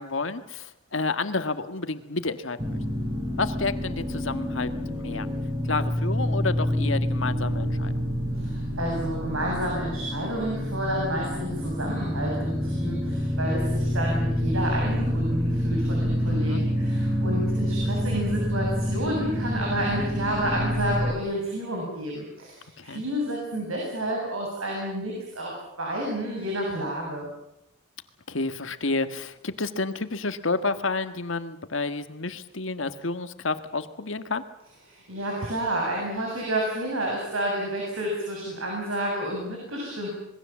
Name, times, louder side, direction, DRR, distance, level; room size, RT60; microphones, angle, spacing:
voice 1, 0.0-2.8 3.4-5.3 5.6-7.9 16.3-16.6 22.8-23.0 28.3-34.4, left 3 dB, 70° left, 10 dB, 1.6 m, -30 dB
sound 1, 2.6-21.1, equal, 15° right, 4.2 m, -27 dB
voice 2, 8.3-27.3 34.9-40.1, right 1 dB, 85° right, -1 dB, 7.5 m, -30 dB
26.5 x 21.0 x 7.4 m, 0.83 s
head